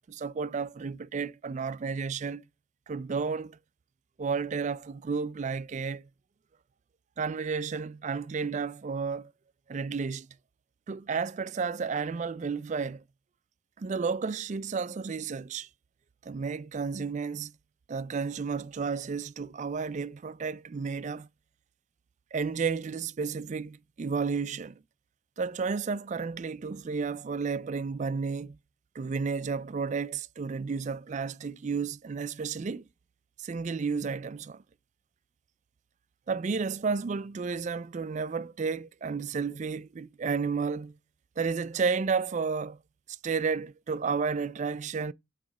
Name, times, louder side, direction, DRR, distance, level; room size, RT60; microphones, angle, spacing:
voice 1, 0.1-2.4 2.9-3.6 4.2-6.1 7.2-9.3 9.7-10.3 10.9-13.0 13.8-15.7 16.2-17.5 17.9-21.3 22.3-24.8 25.4-28.6 29.0-32.8 33.4-34.6 36.3-41.0 41.4-42.8 43.1-45.1, right 5 dB, 35° right, 0.3 m, -32 dB
8.5 x 3.1 x 5.2 m
head